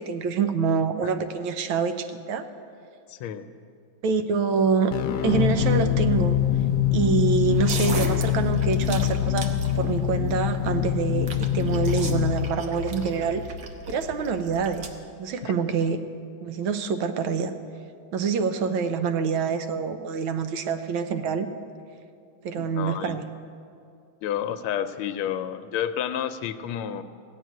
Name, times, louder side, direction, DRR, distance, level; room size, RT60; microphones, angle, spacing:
voice 1, 0.0-2.5 4.0-4.9 5.2-6.4 6.9-9.5 9.7-13.4 13.9-14.8 15.2-16.0 16.4-17.5 18.1-21.5 22.4-23.3, right 6 dB, 75° right, 8 dB, 1.6 m, -26 dB
voice 2, 3.1-3.5 15.4-15.5 22.6-23.2 24.2-27.0, left 9 dB, 85° left, 10 dB, 1.4 m, -30 dB
sound 1, 4.9-13.6, left 11 dB, 70° left, 1.1 m, -24 dB
sound 2, 7.5-14.9, right 3 dB, 55° right, 1.3 m, -37 dB
16.5 x 6.4 x 9.2 m, 2.4 s
omnidirectional pair, 2.3 m